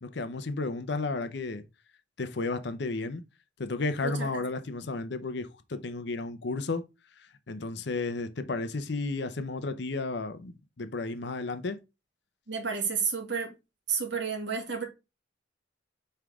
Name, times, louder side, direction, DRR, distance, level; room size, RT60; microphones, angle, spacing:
voice 1, 0.0-1.6 2.2-3.2 3.6-6.8 7.5-11.8, left 3 dB, 60° left, 0.7 m, -33 dB
voice 2, 4.0-4.4 12.5-13.5 13.9-14.8, right 6 dB, 65° right, 1.9 m, -31 dB
5.7 x 4.7 x 3.5 m
head